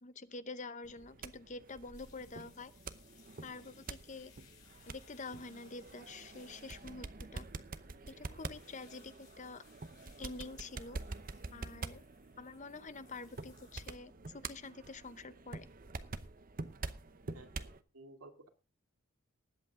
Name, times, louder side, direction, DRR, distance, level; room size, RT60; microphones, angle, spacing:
voice 1, 0.0-2.7 3.4-4.3 4.9-7.5 8.1-9.6 10.2-11.0 11.5-12.0 12.4-15.7, left 3 dB, 35° left, 13 dB, 0.7 m, -47 dB
sound 1, 0.8-17.8, right 3 dB, 40° right, 0.8 m, -47 dB
sound 2, 1.9-14.0, left 8 dB, 75° left, 5.4 m, -65 dB
voice 2, 17.3-18.5, right 2 dB, 75° right, 5 dB, 2.2 m, -55 dB
19.5 x 8.3 x 3.6 m, 0.32 s
head